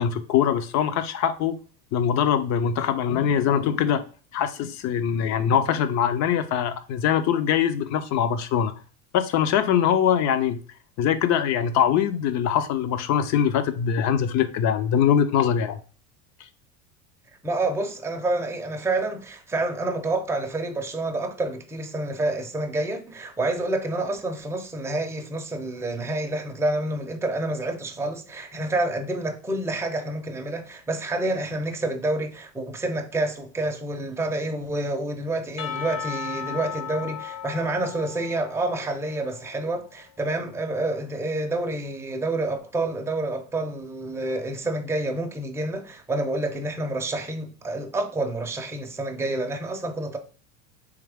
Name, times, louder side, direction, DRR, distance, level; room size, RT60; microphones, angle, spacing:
voice 1, 0.0-1.6 1.9-4.0 4.3-8.7 9.1-10.6 11.0-15.8, left 8 dB, 45° left, 0.6 m, -22 dB
voice 2, 17.4-50.2, right 2 dB, 5° right, 0.6 m, -28 dB
Percussion / Church bell, 35.6-39.6, left 8 dB, 80° left, 0.9 m, -36 dB
3.5 x 3.1 x 3.4 m
hypercardioid pair, 95°, 40 cm